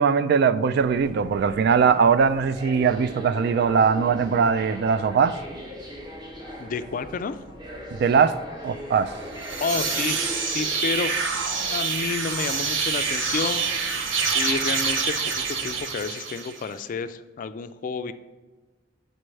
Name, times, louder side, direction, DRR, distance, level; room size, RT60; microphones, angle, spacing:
voice 1, 0.0-5.3 7.9-8.4 8.6-9.1, right 6 dB, 60° right, 0.3 m, -20 dB
sound 1, 0.8-15.8, left 1 dB, 25° right, 0.9 m, -41 dB
voice 2, 6.6-7.4 9.6-11.1 11.6-14.1 14.3-18.1, left 5 dB, 45° left, 0.3 m, -30 dB
sound 2, 9.3-16.7, right 5 dB, 90° right, 0.7 m, -26 dB
7.3 x 5.3 x 3.2 m
head